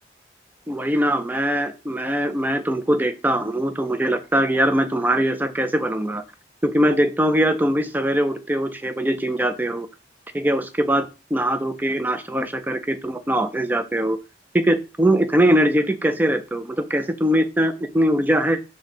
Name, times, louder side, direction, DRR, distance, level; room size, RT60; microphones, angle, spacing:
voice 1, 0.7-6.2 6.6-9.9 10.3-14.2 14.5-18.6, right 1 dB, 10° right, 8 dB, 0.4 m, -21 dB
4.1 x 2.7 x 4.8 m, 0.31 s
head